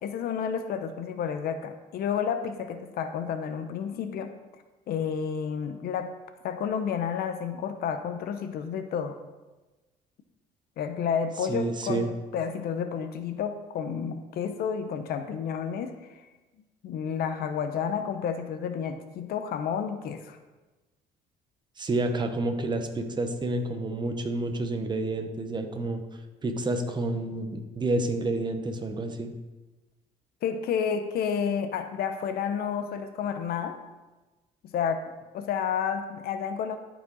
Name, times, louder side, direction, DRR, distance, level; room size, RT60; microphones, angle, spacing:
voice 1, 0.0-4.3 4.9-6.2 6.4-9.2 10.8-12.1 12.3-16.0 16.8-20.4 30.4-33.8 34.6-35.0 35.3-36.8, left 7 dB, 65° left, 9 dB, 0.7 m, -30 dB
voice 2, 11.5-12.1 21.8-26.0 26.4-29.3, right 2 dB, 25° right, 6 dB, 1.0 m, -29 dB
11.5 x 4.9 x 4.0 m, 1.2 s
cardioid pair, 110°, 17 cm